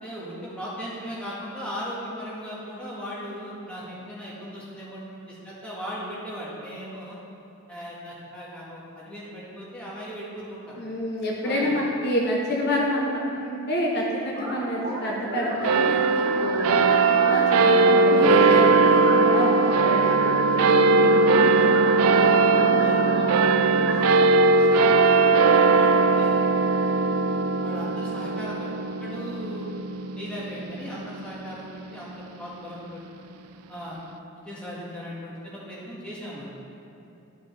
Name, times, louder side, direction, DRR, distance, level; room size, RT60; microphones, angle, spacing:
voice 1, 0.0-7.2 7.7-10.8 11.4-11.7 20.5-21.7 22.8-23.4 23.9-24.3 24.6-26.3 27.6-28.7 29.0-29.7 30.2-33.0 33.7-34.0 34.3-36.4, equal, 5° left, -8 dB, 1.6 m, -38 dB
voice 2, 10.8-13.1 13.3-20.1 22.6-23.0, left 1 dB, 50° left, -2 dB, 0.8 m, -27 dB
sound 1, 14.4-24.3, right 1 dB, 55° right, 1.9 m, -32 dB
sound 2, 15.6-32.4, right 4 dB, 85° right, 0.4 m, -20 dB
12.5 x 5.7 x 3.3 m, 2.8 s
head